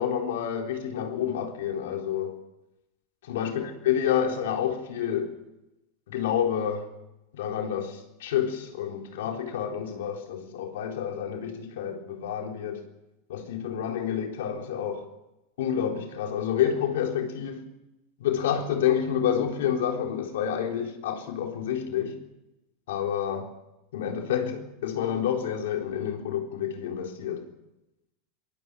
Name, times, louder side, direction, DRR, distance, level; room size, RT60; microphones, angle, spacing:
voice 1, 0.0-2.3 3.2-5.4 6.1-6.9 7.3-12.8 13.3-15.1 15.6-17.7 18.2-22.2 22.9-23.5 23.9-27.5, left 9 dB, 80° left, 4.0 m, -29 dB
24.0 x 20.5 x 6.3 m
supercardioid pair, 130°, 0 cm